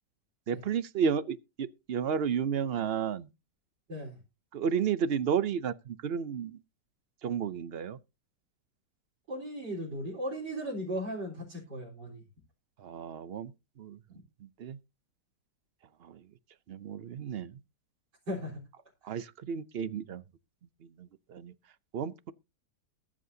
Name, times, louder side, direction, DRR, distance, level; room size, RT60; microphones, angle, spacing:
voice 1, 0.5-3.3 4.5-6.6 7.2-8.0 12.8-13.5 13.8-14.0 14.4-14.8 16.0-16.2 16.7-17.5 19.0-20.2 21.0-21.5 21.9-22.3, right 7 dB, 65° right, 0.6 m, -32 dB
voice 2, 9.3-12.2 18.3-18.6, equal, 85° right, 4.6 m, -37 dB
21.5 x 7.6 x 2.7 m
omnidirectional pair, 1.8 m